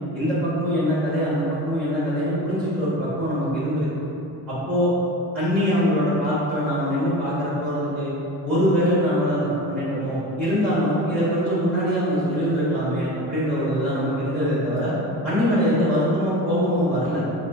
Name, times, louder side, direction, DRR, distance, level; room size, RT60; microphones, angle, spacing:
voice 1, 0.1-3.9 4.5-4.9 5.3-8.1 8.4-9.4 9.7-14.9 15.2-17.2, equal, 5° left, -11 dB, 1.2 m, -23 dB
4.0 x 2.6 x 4.7 m, 2.9 s
cardioid pair, 140°, 41 cm